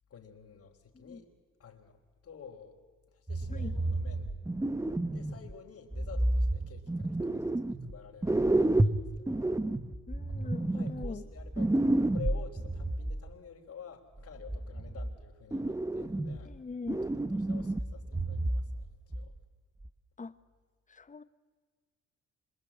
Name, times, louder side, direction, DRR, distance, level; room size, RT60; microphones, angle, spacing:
voice 1, 0.1-1.2 1.6-2.0 2.2-2.8 3.1-4.4 5.1-9.5 10.4-11.8 12.1-16.5 17.1-18.9 19.1-19.3, left 7 dB, 55° left, -4 dB, 3.5 m, -50 dB
sound 1, 3.3-5.5 5.9-7.9 8.2-13.2 14.2-15.2 15.5-16.6 16.9-18.9 19.1-19.3 19.8-19.9, right 1 dB, 10° right, 1.0 m, -30 dB
voice 2, 10.1-11.2 16.4-17.0 20.2-20.4 20.9-21.2, left 4 dB, 25° left, 13 dB, 1.3 m, -42 dB
26.0 x 24.0 x 8.7 m, 1.5 s
cardioid pair, 90°, 30 cm